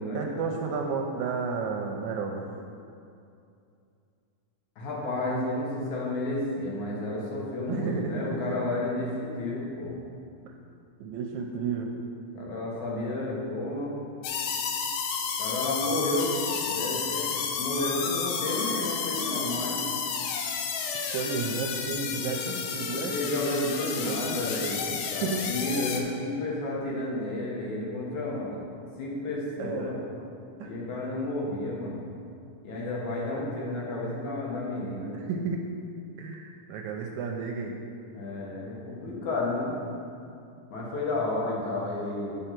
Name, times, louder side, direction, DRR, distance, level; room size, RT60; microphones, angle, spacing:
voice 1, 0.1-2.5 7.7-8.4 10.4-10.5 11.0-12.0 21.1-23.1 24.0-24.7 25.0-25.5 29.6-30.0 30.6-30.7 35.1-35.6 36.2-37.8, right 5 dB, 80° right, 2 dB, 1.8 m, -32 dB
voice 2, 4.8-9.9 12.3-14.0 15.4-19.9 22.3-22.4 22.9-28.6 29.0-30.0 30.6-32.0 32.6-35.2 38.1-39.8 40.7-42.3, left 2 dB, 70° left, -4 dB, 2.9 m, -31 dB
sound 1, 14.2-26.0, left 6 dB, 85° left, 2.3 m, -31 dB
9.3 x 5.5 x 5.8 m, 2.5 s
omnidirectional pair, 3.7 m